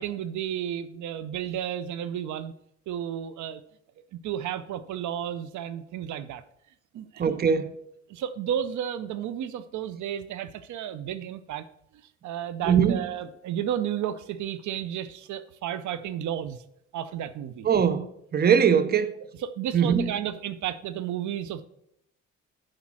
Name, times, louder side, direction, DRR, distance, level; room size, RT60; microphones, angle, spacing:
voice 1, 0.0-2.5 2.9-3.6 4.2-6.4 6.9-7.2 8.1-11.7 12.2-16.6 16.9-17.7 19.4-21.7, right 10 dB, 75° right, 0.6 m, -32 dB
voice 2, 7.2-7.8 12.7-13.0 17.6-19.1 19.7-20.1, right 7 dB, 30° right, 0.6 m, -21 dB
7.3 x 5.1 x 6.0 m
cardioid pair, 90°, 30 cm